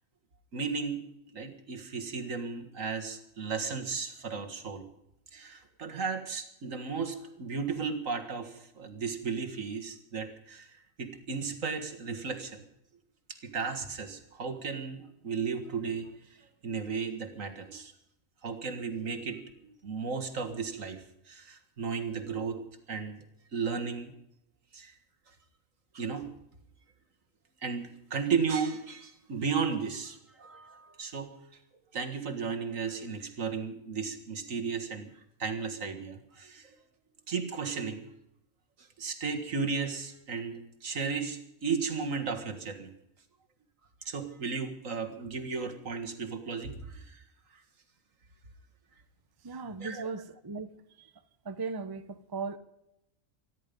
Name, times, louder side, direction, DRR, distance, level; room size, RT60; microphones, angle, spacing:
voice 1, 0.5-1.0 1.3-4.8 5.3-12.6 13.3-17.9 18.4-22.6 22.9-23.2 23.5-24.1 24.7-24.9 25.9-26.3 27.6-31.3 31.9-35.1 35.4-36.8 37.3-38.1 39.0-42.9 44.0-47.2 49.8-50.1, right 5 dB, 75° right, 2.2 m, -35 dB
voice 2, 49.4-50.7 51.0-51.1 51.4-52.6, right 4 dB, 20° right, 0.7 m, -37 dB
24.5 x 11.0 x 5.3 m
omnidirectional pair, 1.4 m